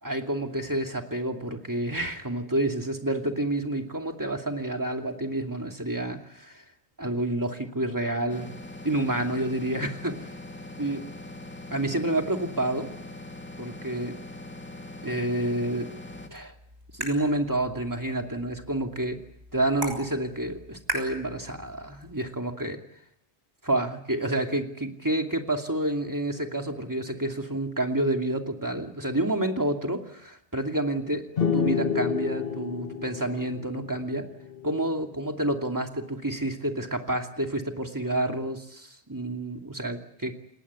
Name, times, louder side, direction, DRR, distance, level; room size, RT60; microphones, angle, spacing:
voice 1, 0.0-6.6 7.0-8.5 8.8-10.3 10.8-11.1 11.7-12.9 13.6-14.2 15.0-15.9 16.3-16.5 16.9-19.2 19.5-22.8 23.6-34.3 34.6-40.4, right 1 dB, 20° right, 3 dB, 2.6 m, -29 dB
sound 1, 8.3-16.3, left 2 dB, 10° left, 2.1 m, -42 dB
sound 2, 16.1-22.1, right 1 dB, 90° right, 6.9 m, -40 dB
sound 3, 31.4-34.9, left 6 dB, 65° left, 1.5 m, -29 dB
29.5 x 19.0 x 8.3 m, 0.73 s
omnidirectional pair, 1.1 m